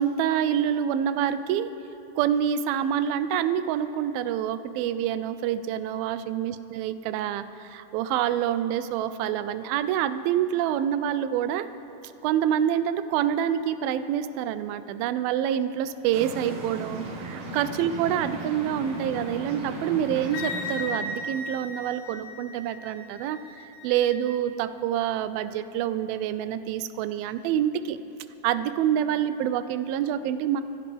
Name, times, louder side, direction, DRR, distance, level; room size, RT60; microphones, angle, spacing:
voice 1, 0.0-1.7 2.2-11.7 12.2-23.4 23.8-28.0 28.4-30.6, right 10 dB, 85° right, 12 dB, 2.4 m, -27 dB
sound 1, 16.1-21.3, right 2 dB, 55° right, 2.0 m, -36 dB
Wind instrument woodwind instrument, 20.3-24.2, left 2 dB, 70° left, 1.7 m, -36 dB
23.5 x 15.0 x 3.5 m, 2.9 s
omnidirectional pair, 4.2 m